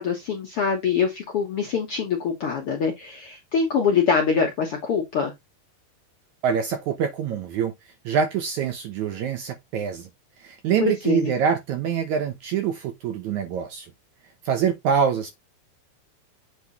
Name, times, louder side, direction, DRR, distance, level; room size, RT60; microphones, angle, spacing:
voice 1, 0.0-5.3 10.8-11.3, left 6 dB, 60° left, 1.5 m, -24 dB
voice 2, 6.4-7.7 8.1-10.1 10.4-13.9 14.5-15.3, right 7 dB, 65° right, 1.9 m, -25 dB
8.1 x 3.4 x 4.1 m
omnidirectional pair, 4.3 m